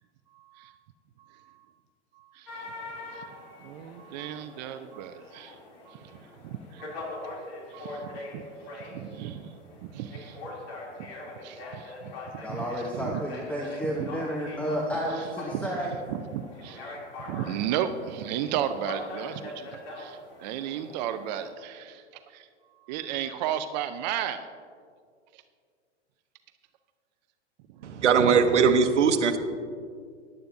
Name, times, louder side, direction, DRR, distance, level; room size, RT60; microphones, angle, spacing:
voice 1, 0.3-0.7 1.2-1.7 2.1-2.7 3.1-5.6 5.9-7.3 7.7-8.4 8.7-10.4 11.4-13.2 13.8-14.1 15.1-24.5 25.3-25.4 27.7-27.9, right 10 dB, 40° right, 10 dB, 0.5 m, -35 dB
sound 1, 2.5-21.5, left 2 dB, 55° left, 2.9 m, -42 dB
voice 2, 12.4-15.9, equal, 5° left, -2 dB, 0.9 m, -31 dB
voice 3, 27.8-29.4, right 6 dB, 75° right, 9 dB, 1.0 m, -20 dB
14.5 x 10.5 x 2.6 m, 2.1 s
hypercardioid pair, 105°, 35 cm